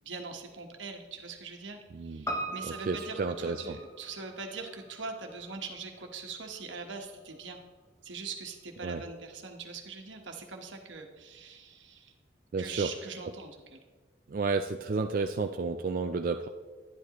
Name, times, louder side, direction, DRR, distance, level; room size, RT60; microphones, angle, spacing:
voice 1, 0.0-7.6 8.0-12.1 12.6-13.8, right 4 dB, 85° right, 3 dB, 1.2 m, -42 dB
voice 2, 1.9-2.3 2.6-3.8 8.8-9.0 12.5-12.9 14.3-16.5, right 4 dB, 45° right, 6 dB, 0.3 m, -31 dB
Piano, 2.3-6.8 7.1-7.2, right 1 dB, 15° left, 0.8 m, -41 dB
11.0 x 10.5 x 3.0 m, 1.4 s
head